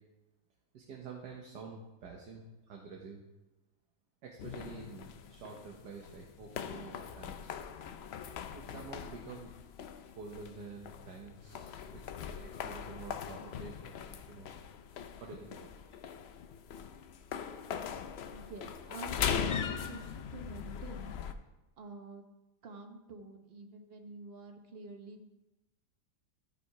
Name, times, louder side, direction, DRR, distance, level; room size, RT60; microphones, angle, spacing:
voice 1, 0.7-3.2 4.2-7.6 8.5-9.5 10.1-14.5 15.2-16.0, right 4 dB, 85° right, 0 dB, 1.7 m, -48 dB
sound 1, 4.4-21.3, left 7 dB, 85° left, 0.5 m, -41 dB
voice 2, 18.3-19.5 19.9-21.2 21.8-22.2 22.6-25.3, right 3 dB, 45° right, 4 dB, 1.0 m, -48 dB
13.5 x 5.2 x 4.7 m, 1.0 s
omnidirectional pair, 1.8 m